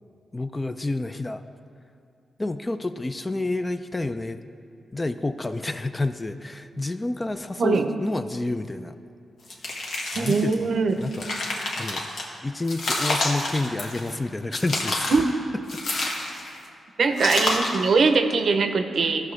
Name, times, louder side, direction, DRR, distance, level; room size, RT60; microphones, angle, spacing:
voice 1, 0.3-1.4 2.4-4.4 4.9-8.9 10.1-11.3 11.8-12.1 12.4-15.1 15.7-15.8, left 2 dB, 20° left, 10 dB, 0.4 m, -29 dB
voice 2, 7.6-7.9 10.2-11.0 15.1-15.2 17.0-19.3, right 4 dB, 65° right, 7 dB, 0.6 m, -21 dB
sound 1, 9.5-10.5 11.0-12.2 12.7-14.2 14.5-15.3 15.7-16.6 17.2-17.9, left 2 dB, 75° left, 1.4 m, -28 dB
14.5 x 6.3 x 3.2 m, 2.4 s
cardioid pair, 75°, 0 cm